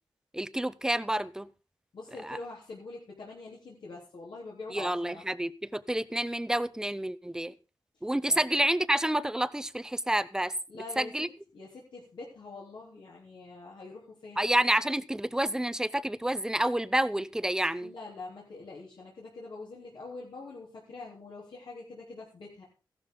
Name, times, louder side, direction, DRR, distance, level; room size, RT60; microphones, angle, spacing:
voice 1, 0.3-1.5 2.2-2.4 4.7-7.5 8.0-10.5 11.0-11.3 14.4-17.9, right 1 dB, 5° right, 0.6 m, -29 dB
voice 2, 1.9-5.2 8.3-8.4 10.7-11.1 11.5-14.4 17.8-22.6, left 3 dB, 75° left, 3.5 m, -44 dB
15.5 x 12.0 x 3.8 m
wide cardioid pair, 165°, 8 cm